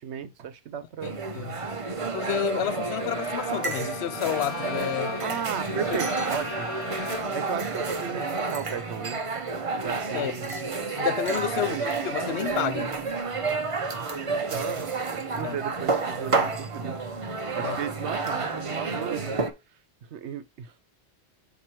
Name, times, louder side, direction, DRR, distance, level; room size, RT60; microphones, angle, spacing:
voice 1, 0.0-1.2 5.2-6.7 7.3-9.2 9.8-10.6 11.6-11.9 14.0-14.1 14.5-17.0 17.5-19.4 20.1-20.8, right 7 dB, 85° right, 1.1 m, -35 dB
voice 2, 1.0-1.6 2.1-5.2 10.1-10.3 11.0-11.8 12.0-12.9 15.4-15.6 17.6-17.8, left 11 dB, 75° left, 0.9 m, -30 dB
sound 1, 1.0-19.5, right 4 dB, 35° right, 0.7 m, -30 dB
Bowed string instrument, 2.5-7.5, left 8 dB, 55° left, 0.4 m, -39 dB
7.4 x 2.9 x 4.6 m
omnidirectional pair, 1.1 m